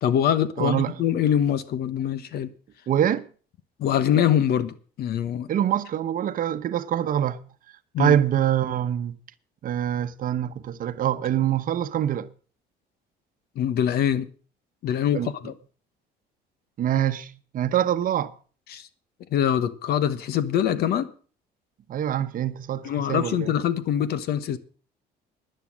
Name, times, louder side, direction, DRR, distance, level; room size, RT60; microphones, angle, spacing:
voice 1, 0.0-2.5 3.8-5.5 7.9-8.2 13.6-14.3 14.8-15.5 18.7-18.9 19.3-21.1 22.8-24.6, left 9 dB, 70° left, 1.2 m, -24 dB
voice 2, 0.6-1.0 2.9-3.3 5.5-7.4 8.0-9.1 9.6-12.3 15.1-15.3 16.8-18.3 21.9-23.5, right 10 dB, 55° right, 0.9 m, -25 dB
11.5 x 10.5 x 6.3 m
cardioid pair, 110°, 17 cm